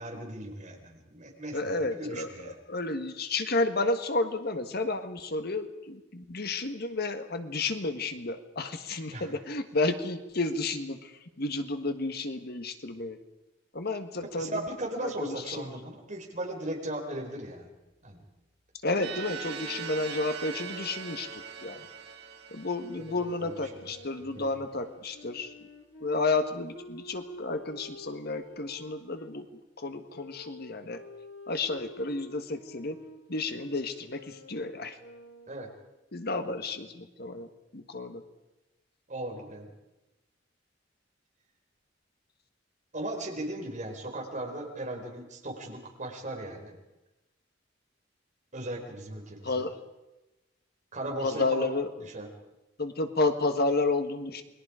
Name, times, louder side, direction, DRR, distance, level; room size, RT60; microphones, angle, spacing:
voice 1, 0.0-2.6 9.1-9.3 14.3-17.7 18.0-18.2 23.0-23.9 24.3-24.5 35.5-35.7 39.1-39.7 42.9-46.8 48.5-49.6 50.9-51.7 52.1-52.3, right 1 dB, 40° right, 1 dB, 4.6 m, -37 dB
voice 2, 1.5-11.1 11.4-13.2 13.7-14.7 15.0-15.7 18.8-21.8 22.5-25.5 26.0-29.5 29.8-31.0 31.5-33.0 33.3-35.0 36.1-37.5 37.7-38.2 49.4-49.7 51.2-52.0 52.8-54.4, left 3 dB, 55° left, 8 dB, 1.6 m, -31 dB
sound 1, 18.9-23.7, right 6 dB, 60° right, 2.0 m, -41 dB
Wind instrument woodwind instrument, 23.5-29.3 30.1-35.9, left 2 dB, 75° left, 2.9 m, -50 dB
28.5 x 21.5 x 5.0 m, 1.0 s
head